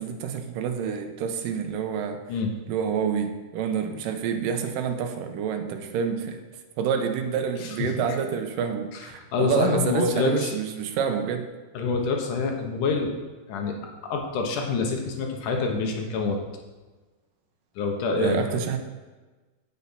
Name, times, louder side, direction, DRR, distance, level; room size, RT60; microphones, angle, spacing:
voice 1, 0.0-2.2 2.7-6.4 6.8-11.5 18.2-18.8, right 7 dB, 85° right, 5 dB, 2.5 m, -28 dB
voice 2, 9.3-10.5 11.7-13.1 13.5-13.7 14.1-16.4 17.8-18.6, left 4 dB, 75° left, 2 dB, 2.7 m, -26 dB
8.4 x 8.4 x 5.7 m, 1.2 s
omnidirectional pair, 3.8 m